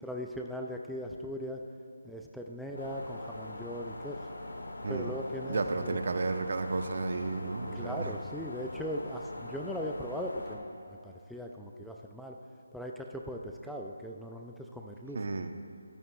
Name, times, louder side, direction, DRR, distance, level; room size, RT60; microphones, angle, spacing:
voice 1, 0.0-1.6 2.0-4.2 4.9-6.0 7.7-12.4 12.7-15.2, equal, ahead, 0 dB, 0.3 m, -39 dB
sound 1, 2.8-10.6, left 2 dB, 80° left, 1.6 m, -43 dB
voice 2, 5.5-8.1 15.1-15.5, right 3 dB, 55° right, 7 dB, 0.7 m, -32 dB
14.0 x 12.5 x 2.3 m, 2.5 s
figure-of-eight pair, 165°, 0 cm